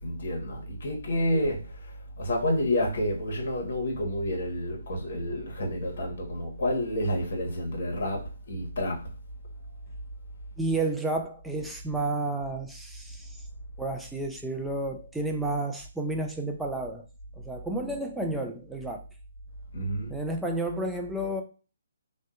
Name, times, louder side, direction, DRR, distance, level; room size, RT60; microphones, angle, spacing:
voice 1, 0.0-1.6 2.2-9.0 19.7-20.1, left 1 dB, 60° left, 1.1 m, -29 dB
voice 2, 10.6-13.5 13.8-17.1 17.4-19.0 20.1-21.4, right 2 dB, 5° right, 0.3 m, -31 dB
2.6 x 2.2 x 2.3 m
figure-of-eight pair, 145°, 0 cm